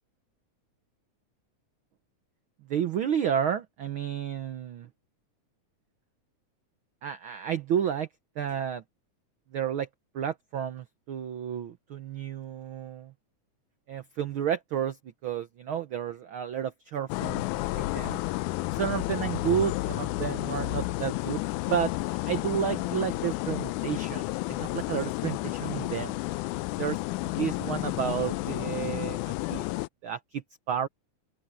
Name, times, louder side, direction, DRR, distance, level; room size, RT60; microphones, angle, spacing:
voice 1, 2.7-4.9 7.0-8.1 8.4-8.8 9.5-9.9 10.1-13.1 13.9-15.0 15.2-17.4 17.7-18.2 18.7-21.4 21.7-21.9 22.3-26.2 26.8-29.2 29.5-29.7 30.0-30.9, right 8 dB, 90° right, 1.1 m, -31 dB
sound 1, 17.1-29.9, left 20 dB, 80° left, 2.0 m, -31 dB
open air
omnidirectional pair, 3.6 m